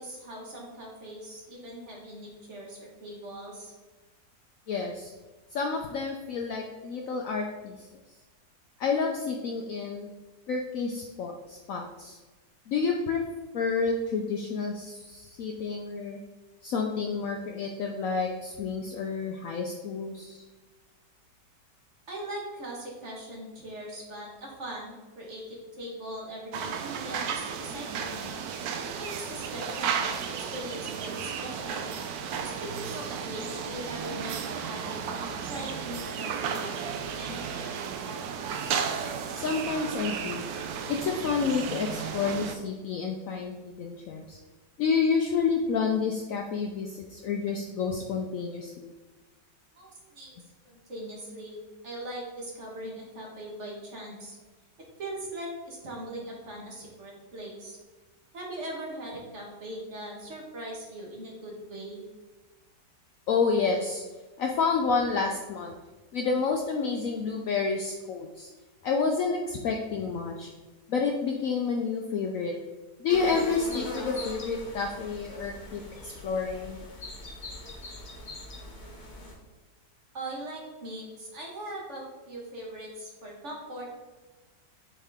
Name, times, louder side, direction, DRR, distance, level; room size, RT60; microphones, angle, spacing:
voice 1, 0.0-3.7 22.1-28.3 28.9-31.9 32.4-37.6 49.7-51.6 51.8-54.4 55.0-57.8 58.3-62.0 80.1-84.0, right 1 dB, 45° right, -2 dB, 1.5 m, -40 dB
voice 2, 4.7-5.1 5.5-7.8 8.8-10.1 10.5-12.2 12.7-13.2 13.5-16.2 16.6-20.4 39.3-40.5 40.9-44.4 44.8-48.9 63.3-64.0 64.4-65.7 66.1-68.5 68.8-70.5 70.9-72.5 73.0-76.8, left 5 dB, 70° left, 2 dB, 0.8 m, -29 dB
sound 1, 26.5-42.5, right 7 dB, 70° right, 1.0 m, -34 dB
sound 2, 73.1-79.3, left 1 dB, 35° left, 1.0 m, -40 dB
7.4 x 3.7 x 3.5 m, 1.2 s
omnidirectional pair, 1.8 m